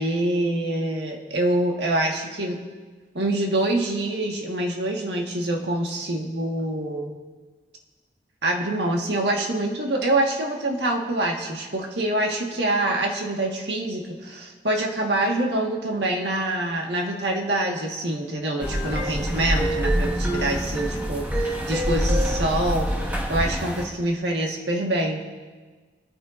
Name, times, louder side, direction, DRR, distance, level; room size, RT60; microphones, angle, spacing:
voice 1, 0.0-2.6 3.1-7.1 8.4-25.2, right 1 dB, 75° right, 1 dB, 1.6 m, -25 dB
sound 1, 18.6-23.9, equal, 10° right, 1.3 m, -25 dB
26.0 x 9.0 x 2.6 m, 1.4 s
head